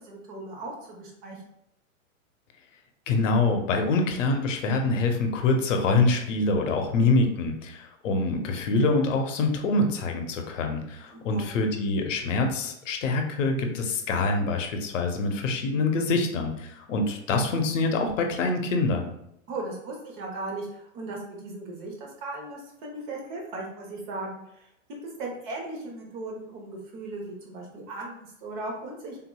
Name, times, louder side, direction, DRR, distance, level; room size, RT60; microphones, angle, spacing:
voice 1, 0.0-1.4 11.1-11.5 19.5-24.7 25.0-29.2, right 2 dB, 35° right, 0 dB, 1.0 m, -37 dB
voice 2, 3.1-19.1, left 3 dB, 60° left, 4 dB, 0.8 m, -25 dB
3.6 x 2.9 x 2.3 m, 0.77 s
hypercardioid pair, 135°, 42 cm